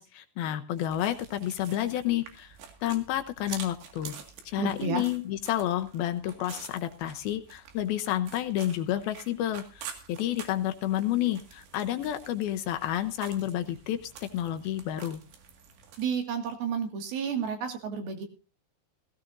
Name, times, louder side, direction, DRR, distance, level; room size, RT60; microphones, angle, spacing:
voice 1, 0.0-4.2 4.5-15.2, left 12 dB, 75° left, 8 dB, 2.5 m, -30 dB
sound 1, 0.7-16.1, right 8 dB, 85° right, 4.2 m, -48 dB
voice 2, 4.6-5.0 16.0-18.3, right 6 dB, 70° right, 5 dB, 3.8 m, -31 dB
17.0 x 16.5 x 2.6 m, 0.32 s
omnidirectional pair, 4.7 m